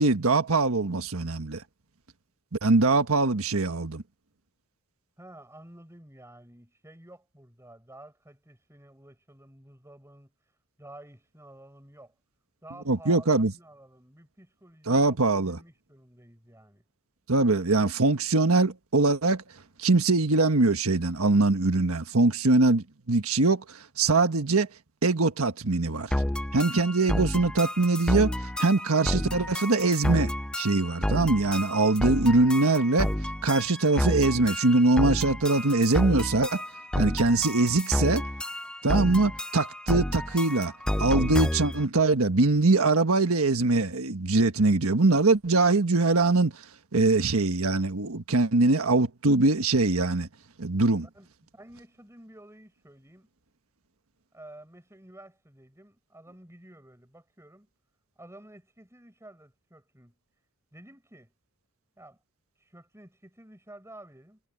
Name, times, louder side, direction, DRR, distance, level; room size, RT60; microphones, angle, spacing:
voice 1, 0.0-1.6 2.6-4.0 12.9-13.5 14.9-15.6 17.3-19.4 19.8-23.6 24.0-24.7 25.0-26.1 26.5-28.3 28.6-30.3 30.6-33.1 33.4-36.6 37.0-38.2 38.8-40.7 41.0-46.5 46.9-50.3 50.6-51.1, right 3 dB, 85° right, 1.5 m, -23 dB
voice 2, 3.3-3.7 5.2-10.3 10.8-12.1 12.6-16.8 51.1-53.3 54.3-57.7 58.2-60.2 60.7-61.3 62.0-62.2 62.6-64.4, right 1 dB, 15° right, 7.9 m, -51 dB
sound 1, 26.1-41.8, left 1 dB, 5° left, 0.4 m, -30 dB
head